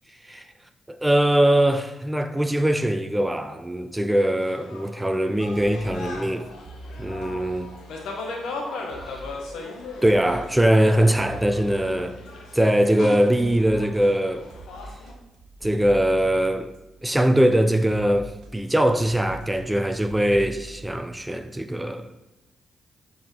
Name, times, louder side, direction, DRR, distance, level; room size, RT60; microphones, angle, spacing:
voice 1, 0.9-6.5 7.0-7.7 9.1-9.2 10.0-12.2 12.5-14.4 15.6-16.7 17.0-22.1, right 1 dB, 10° right, 0.7 m, -21 dB
sound 1, 4.4-15.1, left 3 dB, 70° left, 1.5 m, -38 dB
sound 2, 5.5-17.3 17.9-21.0, right 2 dB, 70° right, 1.1 m, -44 dB
7.5 x 5.6 x 4.6 m
hypercardioid pair, 40°, 0 cm